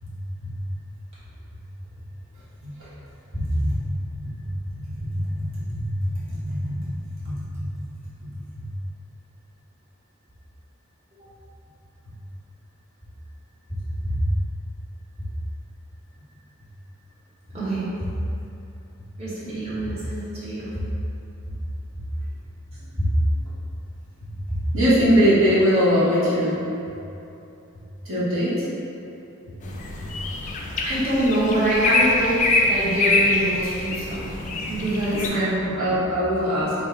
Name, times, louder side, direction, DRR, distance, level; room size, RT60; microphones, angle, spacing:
voice 1, 3.4-3.8 4.1-4.5 4.7-6.9 7.2-7.8 8.2-8.3 8.6-8.7 14.1-14.2 22.8-23.4 24.2-24.3 24.7-26.6 28.0-28.7 30.0-30.1 35.1-35.5 35.7-36.7, equal, 65° right, -10 dB, 1.0 m, -23 dB
voice 2, 17.5-18.1 19.2-20.7 23.0-23.1 30.8-32.4 32.6-34.3 34.7-35.7, right 1 dB, 30° right, -12 dB, 1.0 m, -25 dB
sound 1, 29.6-35.3, left 2 dB, 35° left, 0.3 m, -24 dB
3.5 x 2.0 x 4.3 m, 2.8 s
head